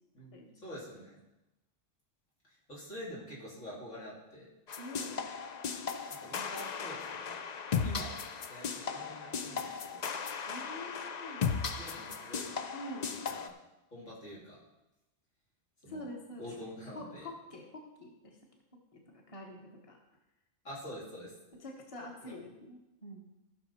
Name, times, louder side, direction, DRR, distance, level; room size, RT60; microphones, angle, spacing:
voice 1, 0.1-1.2 2.5-4.5 6.2-7.4 7.8-8.1 8.5-10.1 11.6-12.5 13.1-13.5 13.9-14.6 15.8-16.1 16.4-17.3 20.6-21.3 22.2-22.4, equal, 75° left, -7 dB, 3.9 m, -47 dB
sound 1, 4.7-13.5, left 6 dB, 50° left, 0.5 m, -37 dB
voice 2, 4.8-5.2 7.8-8.0 10.5-11.4 12.7-13.1 15.9-16.5 16.9-18.4 18.9-20.0 21.6-23.2, left 1 dB, 25° left, 1 dB, 1.4 m, -46 dB
14.5 x 6.2 x 4.3 m, 0.97 s
omnidirectional pair, 1.3 m